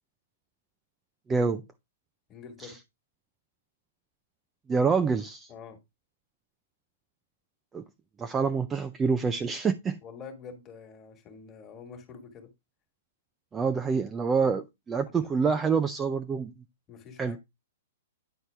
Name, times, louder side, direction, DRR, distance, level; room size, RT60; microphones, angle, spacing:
voice 1, 1.3-1.6 2.6-2.7 4.7-5.5 7.7-7.8 8.2-10.0 13.5-16.5 17.2-17.4, right 5 dB, 15° right, 0.4 m, -26 dB
voice 2, 2.3-2.8 5.5-5.8 10.0-12.5 15.4-15.6 16.9-17.4, left 5 dB, 20° left, 1.6 m, -46 dB
9.7 x 4.5 x 3.3 m
hypercardioid pair, 160°, 0 cm